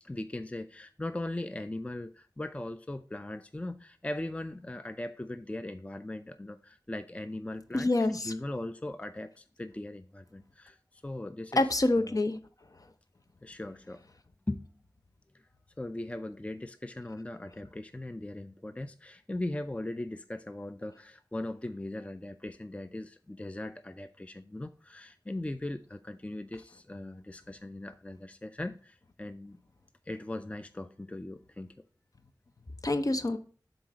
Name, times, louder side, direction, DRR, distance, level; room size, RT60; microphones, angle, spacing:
voice 1, 0.0-10.8 11.0-11.6 12.0-12.2 13.4-14.0 14.5-14.8 15.8-29.6 30.1-31.7, left 1 dB, 20° left, 0.4 m, -39 dB
voice 2, 7.7-8.3 11.6-12.4 32.8-33.4, left 2 dB, 55° left, 0.7 m, -26 dB
7.4 x 4.0 x 4.9 m
wide cardioid pair, 45°, 7 cm